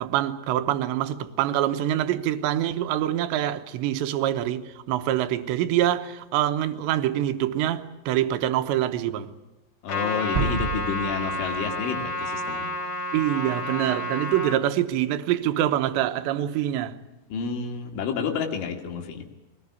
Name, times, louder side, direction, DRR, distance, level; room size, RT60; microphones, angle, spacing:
voice 1, 0.0-9.3 13.1-17.0, right 12 dB, 75° right, 3.2 m, -25 dB
voice 2, 9.8-12.7 17.3-19.2, left 6 dB, 90° left, 4.8 m, -30 dB
Trumpet, 9.9-14.6, equal, 40° left, 4.5 m, -30 dB
sound 1, 10.4-12.2 12.5-12.6, right 4 dB, 40° right, 1.2 m, -31 dB
22.0 x 19.5 x 9.7 m
omnidirectional pair, 5.3 m